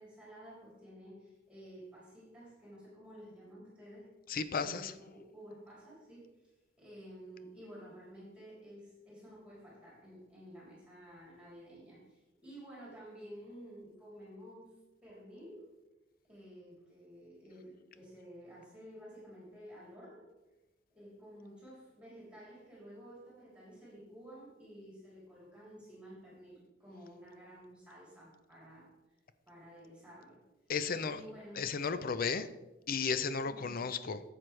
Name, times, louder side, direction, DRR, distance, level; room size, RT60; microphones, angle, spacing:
voice 1, 0.0-4.1 4.6-6.3 6.8-14.7 15.0-15.7 16.2-20.3 20.9-28.9 29.4-30.4 31.0-31.7 33.4-33.9, equal, 5° right, -7 dB, 3.3 m, -52 dB
voice 2, 4.3-4.9 30.7-31.2 31.6-32.5 32.9-34.2, left 5 dB, 50° left, 12 dB, 0.5 m, -34 dB
10.5 x 7.8 x 3.3 m, 1.0 s
head